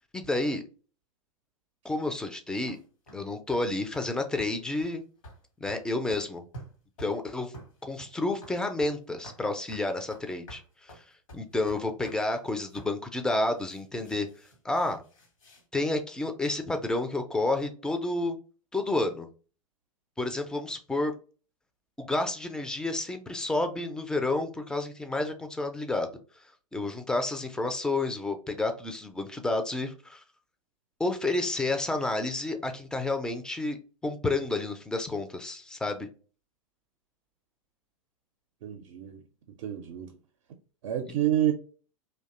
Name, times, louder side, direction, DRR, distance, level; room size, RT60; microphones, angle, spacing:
voice 1, 0.1-0.6 1.8-2.8 3.1-5.0 5.6-6.4 7.0-7.5 7.8-10.9 11.3-14.3 14.6-15.0 15.7-18.4 18.7-19.3 20.2-21.1 22.0-26.1 26.7-30.2 31.0-33.8 34.0-36.1, left 2 dB, 5° left, 0.3 m, -30 dB
sound 1, 2.5-3.2 3.5-3.7 3.9-4.1 4.4-4.5 4.8-4.9 5.2-5.4 5.7-6.3 6.5-7.2 7.5-9.0 9.2-9.4 9.7-12.2 12.7-13.0 13.5-15.6, right 1 dB, 70° left, 1.0 m, -49 dB
voice 2, 38.6-39.2 39.6-40.1 40.8-41.5, right 12 dB, 60° right, 0.4 m, -28 dB
2.5 x 2.1 x 2.3 m
figure-of-eight pair, 95°, 18 cm